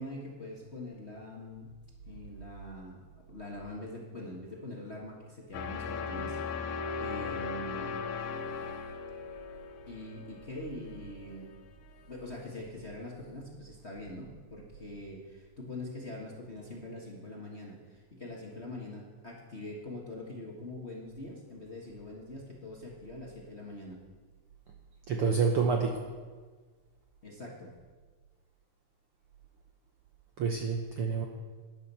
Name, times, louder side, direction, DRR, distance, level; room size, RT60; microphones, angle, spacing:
voice 1, 0.0-1.7 2.0-8.0 9.9-11.5 12.1-24.0 27.2-27.7, left 1 dB, 30° left, -3 dB, 1.4 m, -43 dB
sound 1, 5.5-11.5, left 5 dB, 85° left, 2.3 m, -38 dB
voice 2, 25.1-26.1 30.4-31.3, right 5 dB, 65° right, 2 dB, 1.4 m, -28 dB
13.0 x 10.5 x 5.6 m, 1.4 s
omnidirectional pair, 3.4 m